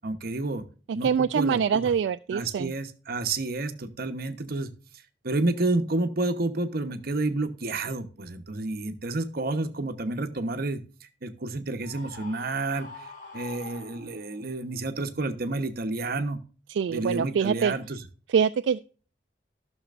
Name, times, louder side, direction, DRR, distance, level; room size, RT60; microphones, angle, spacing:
voice 1, 0.0-0.6 0.9-1.8 2.3-4.7 5.2-16.4 16.9-18.0, right 2 dB, 60° right, 8 dB, 1.0 m, -30 dB
voice 2, 0.9-2.7 16.7-17.7 18.3-18.8, right 7 dB, 80° right, 11 dB, 0.3 m, -25 dB
Screaming, 11.8-14.5, left 3 dB, 50° left, 3.0 m, -44 dB
14.0 x 6.4 x 2.5 m, 0.38 s
head